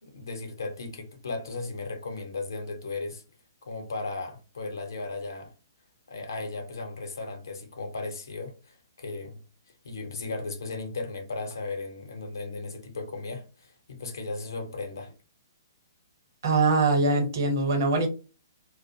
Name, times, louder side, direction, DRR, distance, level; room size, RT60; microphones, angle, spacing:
voice 1, 0.0-3.2 3.6-5.5 6.1-9.4 9.8-15.1, left 3 dB, 70° left, 0.7 m, -36 dB
voice 2, 16.4-18.1, right 3 dB, 55° right, 0.9 m, -23 dB
2.5 x 2.1 x 2.7 m
figure-of-eight pair, 125°, 2 cm